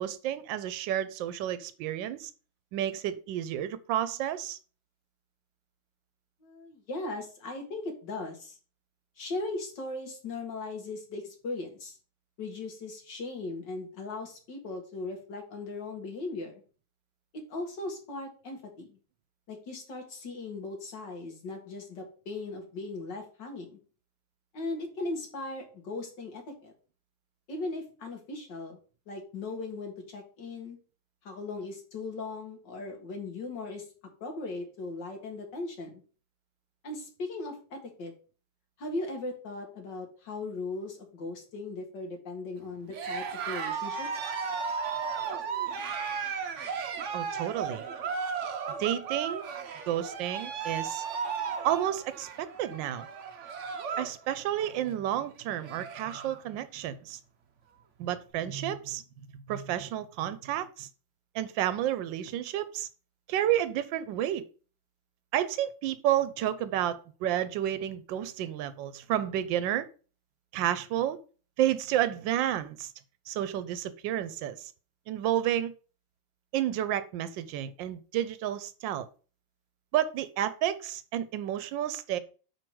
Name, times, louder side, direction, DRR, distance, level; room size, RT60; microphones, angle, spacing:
voice 1, 0.0-2.3 2.7-4.6 47.1-47.8 48.8-49.5 49.9-51.0 51.6-53.1 54.0-57.2 58.0-59.0 59.5-60.9 61.3-62.9 63.3-64.5 65.3-69.9 70.5-71.2 71.6-72.9 73.3-74.7 75.1-75.7 76.5-79.1 79.9-82.2, right 11 dB, 90° right, 1.3 m, -31 dB
voice 2, 6.4-8.6 9.2-12.0 12.4-16.6 17.5-19.0 19.5-23.8 24.5-26.7 27.5-28.8 29.1-30.8 31.2-33.8 34.2-36.0 36.8-38.1 38.8-44.1, left 2 dB, 75° left, 2.4 m, -38 dB
Cheering, 42.9-54.2 54.5-54.9 55.3-55.4 55.6-56.4, right 6 dB, 55° right, 0.9 m, -35 dB
5.0 x 4.6 x 6.0 m
omnidirectional pair, 2.0 m